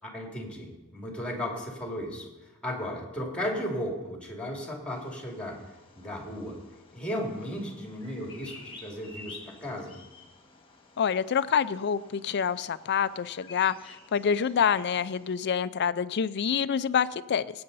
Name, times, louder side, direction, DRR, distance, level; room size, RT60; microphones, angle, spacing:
voice 1, 0.0-5.6 6.0-6.6 6.9-10.0, equal, 5° left, 0 dB, 2.5 m, -35 dB
Bird vocalization bird call bird song, 4.9-15.4, left 3 dB, 25° left, 1.8 m, -51 dB
voice 2, 11.0-17.4, left 7 dB, 50° left, 16 dB, 0.4 m, -27 dB
19.5 x 8.7 x 4.1 m, 1.1 s
head